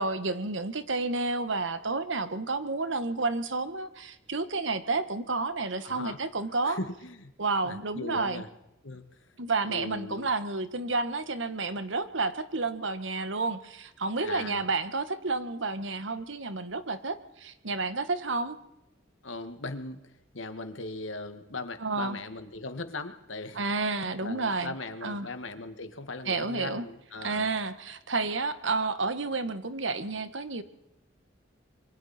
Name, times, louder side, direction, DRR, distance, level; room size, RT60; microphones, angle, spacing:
voice 1, 0.0-6.8 7.4-8.4 9.4-18.6 21.8-22.2 23.5-24.7 25.0-25.3 26.2-26.9 27.2-30.6, right 3 dB, 70° right, 11 dB, 1.6 m, -30 dB
voice 2, 5.8-6.2 6.7-7.3 7.6-8.5 8.8-9.0 9.7-10.3 14.2-14.6 19.2-20.0 20.3-23.6 24.2-27.5, left 2 dB, 80° left, 8 dB, 2.0 m, -39 dB
27.0 x 24.0 x 4.4 m, 0.85 s
head